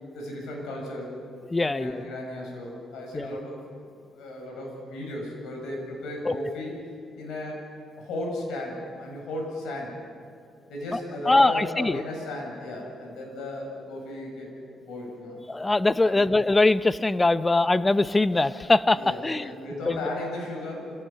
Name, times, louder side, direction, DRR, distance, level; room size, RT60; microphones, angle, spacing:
voice 1, 0.1-1.2 1.6-3.9 4.1-7.7 8.0-9.9 10.7-14.5 14.8-15.4 16.0-16.3 18.9-20.9, left 1 dB, 85° left, 0 dB, 7.2 m, -35 dB
voice 2, 1.5-2.0 3.1-3.3 6.3-6.4 10.9-11.0 11.3-12.0 15.5-19.5 19.9-20.0, left 2 dB, 20° left, 13 dB, 0.7 m, -22 dB
26.0 x 18.0 x 5.8 m, 2.4 s
cardioid pair, 90°, 0 cm